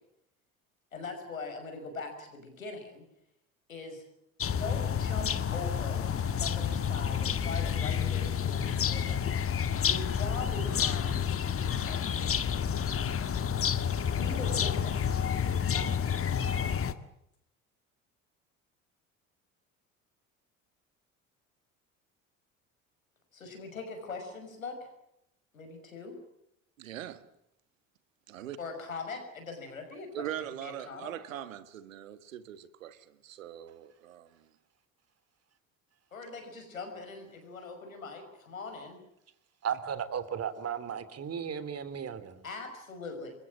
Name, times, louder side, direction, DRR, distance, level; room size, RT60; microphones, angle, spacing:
voice 1, 0.9-3.0 3.7-4.0 4.6-9.2 9.8-11.2 11.6-12.4 14.2-15.2 15.7-16.4 23.3-24.9 25.5-26.2 28.6-30.2 30.6-31.1 36.1-39.0 42.4-43.3, left 3 dB, 85° left, 6.0 m, -41 dB
sound 1, 4.4-16.9, left 8 dB, 35° left, 1.9 m, -29 dB
voice 2, 26.8-27.3 28.3-28.6 30.1-34.5, right 11 dB, 75° right, 1.8 m, -41 dB
voice 3, 39.6-42.4, right 8 dB, 40° right, 3.2 m, -35 dB
28.0 x 23.0 x 7.6 m
figure-of-eight pair, 60°, 40 cm